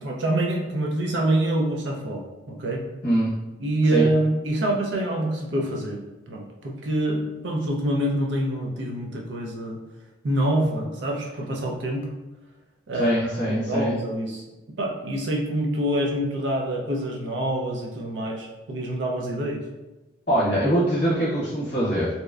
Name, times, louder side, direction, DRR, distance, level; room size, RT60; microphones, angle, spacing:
voice 1, 0.0-2.8 3.6-9.8 10.2-12.0 12.9-13.3 13.7-14.4 14.8-19.6, right 1 dB, 80° right, -1 dB, 0.5 m, -26 dB
voice 2, 13.0-14.0 20.3-22.1, equal, 45° left, -8 dB, 0.8 m, -23 dB
2.8 x 2.0 x 2.3 m, 1.1 s
head